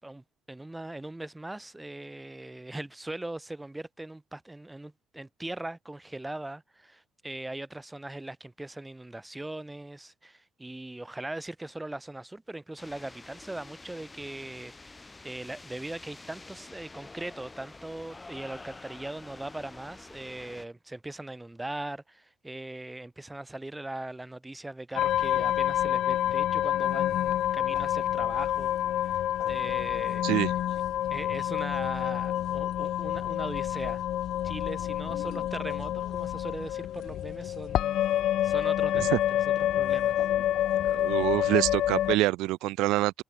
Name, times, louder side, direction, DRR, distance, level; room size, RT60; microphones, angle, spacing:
voice 1, 0.0-30.3 31.1-34.0 34.4-38.0 38.4-39.4 39.7-40.2, right 2 dB, 10° right, 4.6 m, -40 dB
sound 1, 12.8-20.7, left 3 dB, 15° left, 2.9 m, -48 dB
sound 2, 24.9-42.2, left 12 dB, 65° left, 0.9 m, -28 dB
voice 2, 40.9-43.2, right 18 dB, 90° right, 1.8 m, -26 dB
cardioid pair, 120°, 0 cm